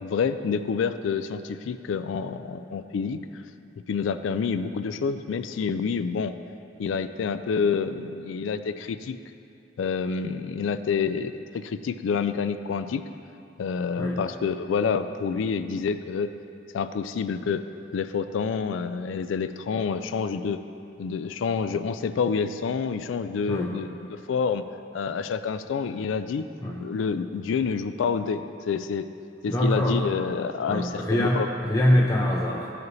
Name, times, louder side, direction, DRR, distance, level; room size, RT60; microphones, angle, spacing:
voice 1, 0.0-3.2 3.9-6.3 6.8-9.2 9.8-13.0 13.6-16.3 16.7-17.6 17.9-20.6 21.0-24.6 24.9-26.4 26.8-29.1 29.4-31.5, left 6 dB, 85° left, 11 dB, 0.3 m, -28 dB
voice 2, 23.5-23.8 26.6-26.8 29.5-30.0 30.7-32.7, left 1 dB, 20° left, -2 dB, 0.5 m, -24 dB
13.5 x 4.9 x 3.1 m, 2.6 s
head